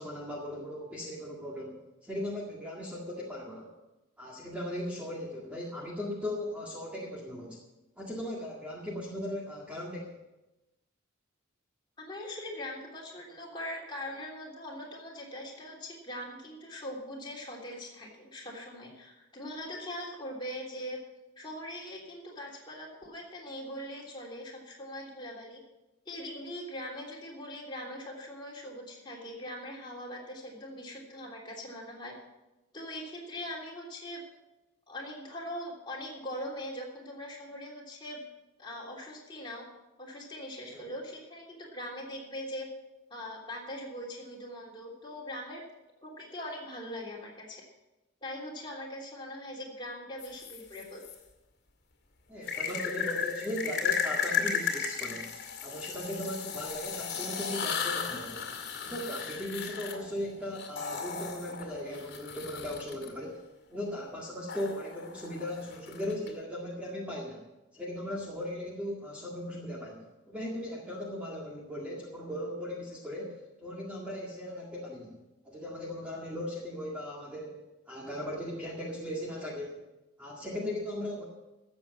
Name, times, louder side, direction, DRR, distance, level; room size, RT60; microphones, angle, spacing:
voice 1, 0.0-3.7 4.2-7.6 8.0-10.2 40.7-40.9 52.3-55.3 55.6-58.4 58.8-63.4 63.7-67.5 67.7-75.2 75.4-79.8 80.2-81.2, left 1 dB, 5° right, -4 dB, 1.9 m, -38 dB
voice 2, 12.0-21.0 21.4-25.6 26.0-32.1 32.7-34.2 34.9-38.2 38.6-39.6 40.0-42.7 43.1-45.6 46.0-47.6 48.2-51.0, left 1 dB, 20° left, -3 dB, 3.3 m, -41 dB
sound 1, 50.2-51.1 52.4-63.1 64.5-66.3, left 7 dB, 55° left, 2.2 m, -35 dB
13.5 x 7.9 x 7.3 m, 1.0 s
head